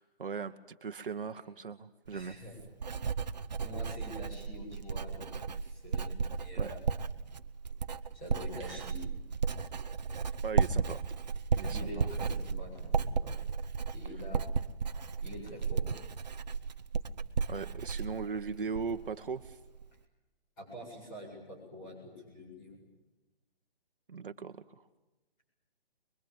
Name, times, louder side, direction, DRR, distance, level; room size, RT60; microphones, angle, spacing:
voice 1, 0.0-2.3 6.5-6.7 8.6-8.8 10.4-11.0 11.5-12.1 17.5-19.6 24.1-24.8, right 5 dB, 60° right, 9 dB, 1.3 m, -39 dB
voice 2, 2.1-2.6 3.6-6.8 8.1-9.0 11.7-13.4 13.9-14.5 15.2-15.9 20.6-22.8, left 1 dB, 15° left, -3 dB, 7.8 m, -46 dB
Writing, 2.1-19.1 19.4-19.9, right 5 dB, 45° right, 1.0 m, -34 dB
23.5 x 23.0 x 9.0 m, 1.0 s
hypercardioid pair, 180°, 30 cm